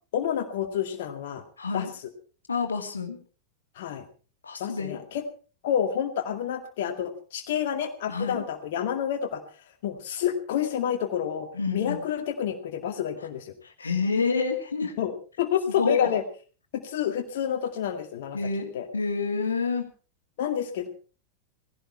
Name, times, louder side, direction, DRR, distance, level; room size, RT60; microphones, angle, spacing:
voice 1, 0.1-1.4 1.7-1.9 3.8-4.0 4.6-5.2 5.6-9.4 9.8-13.5 15.0-16.2 16.7-18.4 18.7-18.9 20.4-20.9, left 9 dB, 55° left, 4 dB, 2.1 m, -29 dB
voice 2, 1.6-1.9 2.5-3.2 4.4-5.0 8.1-8.4 11.5-12.0 13.6-14.9 15.8-16.1 18.3-19.8, left 4 dB, 75° left, 5 dB, 2.5 m, -28 dB
18.5 x 16.0 x 4.5 m, 0.39 s
figure-of-eight pair, 90°, 0 cm